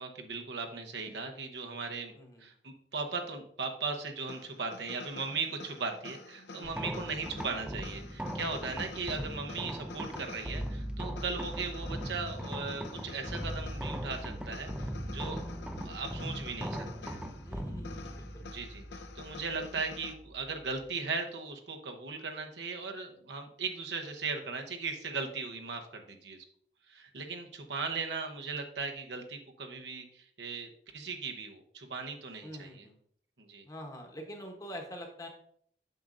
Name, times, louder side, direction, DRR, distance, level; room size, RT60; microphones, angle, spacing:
voice 1, 0.0-14.7 15.1-15.4 15.8-17.2 18.5-26.4 26.9-32.9 33.4-33.6, right 4 dB, 75° right, 4 dB, 0.9 m, -38 dB
voice 2, 2.1-2.5 6.5-6.9 17.5-18.4 32.4-32.9 33.6-35.3, equal, 20° left, 3 dB, 1.0 m, -45 dB
sound 1, 4.3-20.1, left 3 dB, 75° left, 0.7 m, -48 dB
sound 2, 6.6-20.9, equal, 5° right, 0.4 m, -40 dB
7.8 x 6.1 x 2.6 m, 0.62 s
head